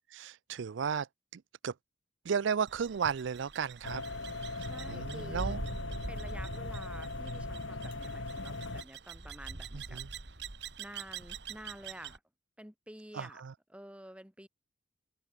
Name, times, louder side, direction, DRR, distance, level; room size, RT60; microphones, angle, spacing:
voice 1, 0.1-1.1 1.3-1.7 2.2-4.0 4.6-5.6 9.7-10.1 13.1-13.5, right 6 dB, 80° right, 0.4 m, -34 dB
sound 1, 2.7-12.2, right 3 dB, 60° right, 1.8 m, -44 dB
sound 2, 3.8-8.8, left 2 dB, 85° left, 2.6 m, -39 dB
voice 2, 4.6-5.6 6.1-10.0 10.8-12.2 12.6-13.4 13.7-14.5, right 1 dB, 5° right, 2.8 m, -50 dB
open air
head